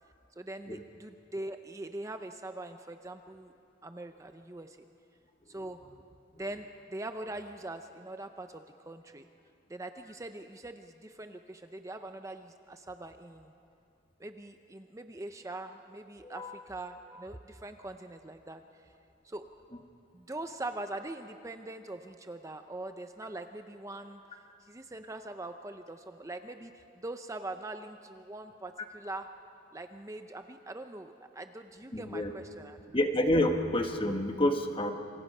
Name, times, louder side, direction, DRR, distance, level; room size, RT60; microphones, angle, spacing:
voice 1, 0.4-3.5 3.8-4.8 5.5-5.8 6.3-9.3 9.7-13.5 14.2-18.9 19.2-19.4 20.1-24.2 24.7-29.3 29.7-33.0, right 2 dB, 15° right, 7 dB, 0.6 m, -42 dB
voice 2, 16.2-16.5 31.9-32.3 32.9-34.9, left 1 dB, 30° left, 5 dB, 1.4 m, -28 dB
27.5 x 26.0 x 5.5 m, 2.6 s
head